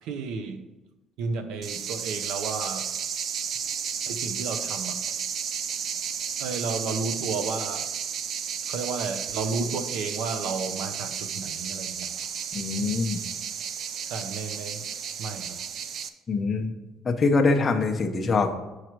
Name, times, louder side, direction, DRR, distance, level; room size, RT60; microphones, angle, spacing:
voice 1, 0.0-0.6 1.2-2.9 4.1-5.0 6.4-7.9 8.7-12.1 14.0-14.9 15.2-15.6, right 4 dB, 80° right, 8 dB, 0.7 m, -32 dB
sound 1, 1.6-16.1, right 7 dB, 45° right, 0.4 m, -33 dB
voice 2, 12.5-13.2 16.3-16.7 17.0-18.5, left 3 dB, 25° left, 4 dB, 0.6 m, -24 dB
6.2 x 4.8 x 4.5 m, 1.1 s
cardioid pair, 155°, 0 cm